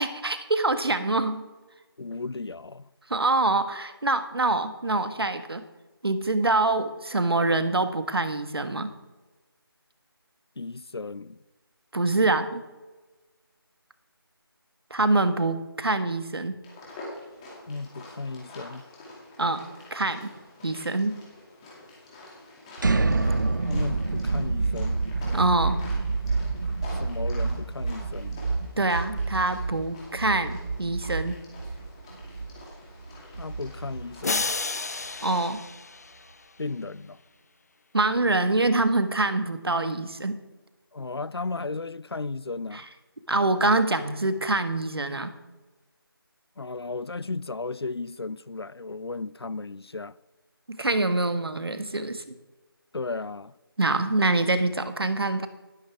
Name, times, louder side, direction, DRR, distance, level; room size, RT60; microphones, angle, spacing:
voice 1, 0.0-1.5 3.1-5.6 6.0-8.9 11.9-12.7 14.9-16.6 19.4-19.6 19.9-20.3 20.6-21.2 25.3-25.8 28.8-31.4 35.2-35.6 37.9-40.4 42.7-42.8 43.3-45.3 50.7-52.4 53.8-55.5, right 2 dB, 75° right, 1.5 m, -25 dB
voice 2, 2.0-2.9 10.6-11.4 17.7-18.9 23.7-25.0 27.0-28.4 33.4-34.5 36.6-37.2 40.9-42.8 46.6-50.2 52.9-53.5, left 3 dB, 90° left, 0.6 m, -35 dB
sound 1, 16.6-35.5, left 2 dB, 15° left, 2.4 m, -47 dB
sound 2, 22.8-34.6, right 3 dB, 55° right, 0.8 m, -28 dB
sound 3, 34.2-36.6, left 3 dB, 40° left, 0.5 m, -31 dB
13.5 x 13.0 x 3.5 m
figure-of-eight pair, 170°, 13 cm